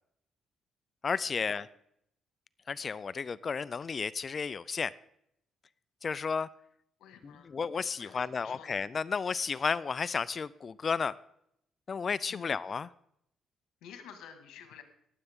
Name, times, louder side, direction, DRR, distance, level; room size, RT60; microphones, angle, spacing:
voice 1, 1.0-1.7 2.7-4.9 6.0-6.5 7.2-11.1 11.9-12.9, left 5 dB, 40° left, 19 dB, 0.4 m, -33 dB
voice 2, 7.0-7.5 8.0-8.8 12.3-12.6 13.8-14.8, left 8 dB, 90° left, 7 dB, 1.8 m, -51 dB
19.5 x 8.0 x 3.6 m, 0.74 s
cardioid pair, 90°, 0 cm